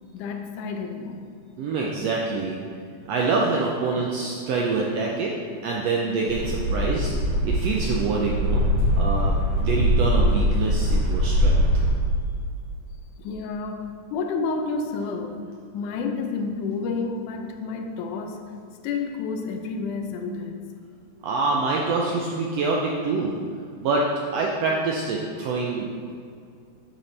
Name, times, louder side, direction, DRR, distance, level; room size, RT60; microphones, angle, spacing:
voice 1, 0.1-1.2 13.2-15.4 15.7-18.5 18.8-20.6, left 4 dB, 80° left, 5 dB, 2.1 m, -30 dB
voice 2, 1.6-2.6 3.1-5.3 5.6-7.1 7.4-8.6 9.0-11.6 21.2-23.4 23.8-24.1 24.3-26.1, right 3 dB, 80° right, -2 dB, 1.5 m, -26 dB
sound 1, 6.3-11.9, equal, 55° right, 2.2 m, -22 dB
8.5 x 7.0 x 3.3 m, 2.3 s
omnidirectional pair, 3.6 m